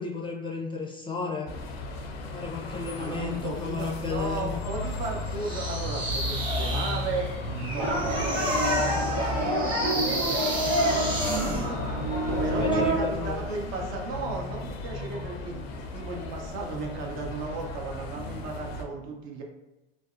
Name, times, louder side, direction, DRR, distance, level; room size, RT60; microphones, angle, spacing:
voice 1, 0.0-1.5 2.3-4.5 8.8-9.5 12.3-13.4, left 4 dB, 15° left, -1 dB, 0.4 m, -34 dB
sound 1, 1.5-18.8, left 2 dB, 90° left, 0.5 m, -35 dB
voice 2, 3.0-7.9 9.9-10.2 12.4-19.4, right 3 dB, 55° right, 1 dB, 0.7 m, -35 dB
sound 2, 5.4-11.7, right 2 dB, 15° right, 1.0 m, -33 dB
sound 3, 7.8-12.9, right 1 dB, 85° right, 1.1 m, -27 dB
2.5 x 2.0 x 2.5 m, 0.98 s
hypercardioid pair, 85°, 30 cm